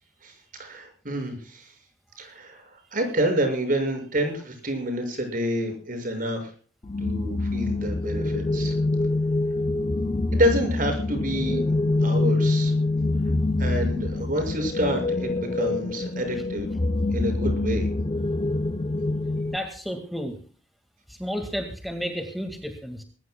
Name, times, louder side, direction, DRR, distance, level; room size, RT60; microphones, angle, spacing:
voice 1, 0.2-1.7 2.2-6.5 7.0-8.7 10.3-11.6 12.0-12.7 13.6-16.7 17.0-17.9, equal, 50° right, 5 dB, 6.3 m, -28 dB
sound 1, 6.8-19.6, left 2 dB, 25° left, 0.5 m, -25 dB
voice 2, 19.5-20.4 21.1-23.0, equal, ahead, 4 dB, 1.9 m, -32 dB
21.0 x 18.5 x 2.3 m, 0.41 s
head